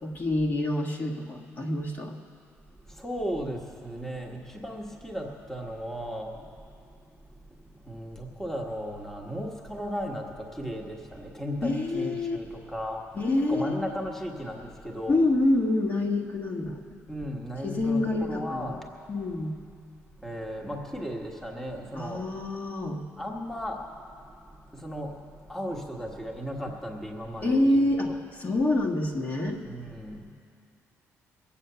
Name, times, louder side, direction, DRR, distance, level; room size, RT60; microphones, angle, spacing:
voice 1, 0.0-2.1 11.6-12.4 13.1-13.9 15.1-16.8 17.6-18.8 19.1-19.6 21.9-23.0 27.4-29.6, left 2 dB, 35° left, -1 dB, 1.6 m, -27 dB
voice 2, 2.7-6.6 6.8-13.2 13.5-15.2 17.1-18.9 20.2-22.3 23.2-25.2 25.5-28.2 29.6-30.3, equal, 5° left, 0 dB, 1.5 m, -36 dB
22.0 x 8.7 x 6.9 m, 2.4 s
cardioid pair, 100°, 5 cm